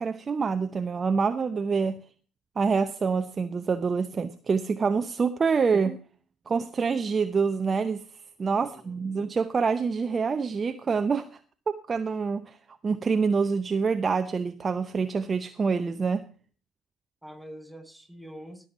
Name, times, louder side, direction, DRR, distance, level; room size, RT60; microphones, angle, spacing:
voice 1, 0.0-2.0 2.6-6.0 6.5-8.0 8.4-11.4 11.7-12.6 12.8-16.2, right 5 dB, 35° right, 9 dB, 0.7 m, -26 dB
voice 2, 8.6-9.1 17.2-18.7, equal, ahead, 8 dB, 4.2 m, -45 dB
16.0 x 7.0 x 4.9 m, 0.40 s
hypercardioid pair, 55°, 0 cm